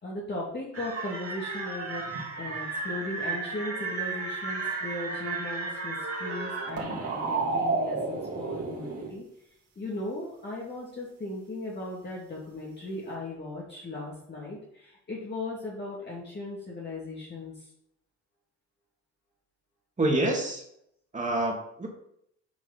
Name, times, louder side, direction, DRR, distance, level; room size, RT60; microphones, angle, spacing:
voice 1, 0.0-2.0 2.4-9.2 9.8-17.5, left 2 dB, 35° left, -5 dB, 2.3 m, -37 dB
sound 1, 0.7-9.1, right 3 dB, 50° right, 2.7 m, -32 dB
voice 2, 20.0-20.6 21.1-21.9, right 1 dB, 25° right, 0 dB, 2.5 m, -27 dB
8.1 x 4.7 x 5.8 m, 0.74 s
cardioid pair, 90°, 30 cm